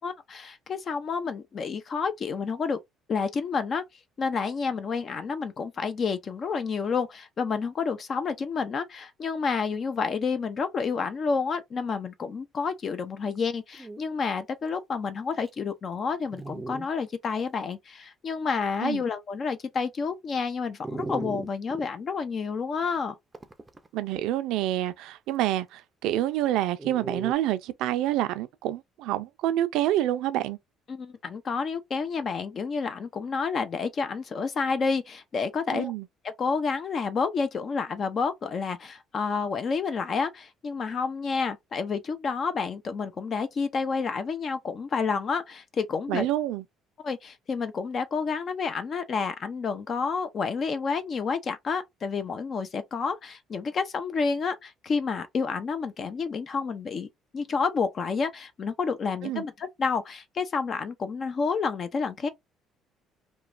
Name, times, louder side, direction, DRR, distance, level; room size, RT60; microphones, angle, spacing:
voice 1, 0.0-2.8 3.1-3.8 4.2-23.1 30.9-35.9 36.4-46.3 47.0-57.1 57.3-62.3, left 5 dB, 45° left, 0.5 m, -29 dB
Dog, 13.4-13.5 13.7-14.0 14.7-14.8 15.5-15.6 16.3-16.9 17.4-17.5 20.8-21.9 23.3-23.9 26.8-27.3, right 3 dB, 15° right, 0.5 m, -36 dB
voice 2, 23.9-30.6 35.7-36.1 46.1-46.6 59.2-59.4, right 13 dB, 80° right, 0.4 m, -27 dB
3.0 x 2.2 x 2.5 m
cardioid pair, 95°, 0 cm